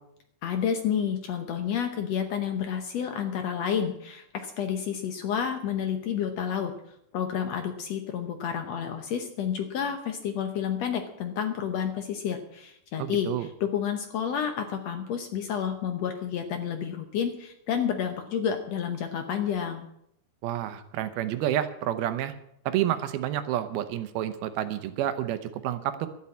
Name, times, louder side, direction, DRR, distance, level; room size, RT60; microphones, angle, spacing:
voice 1, 0.4-6.7 7.1-19.9, left 8 dB, 85° left, 6 dB, 1.4 m, -30 dB
voice 2, 13.0-13.5 20.4-22.3 22.7-26.1, right 12 dB, 80° right, 11 dB, 2.6 m, -29 dB
12.5 x 8.6 x 8.4 m, 0.75 s
omnidirectional pair, 4.4 m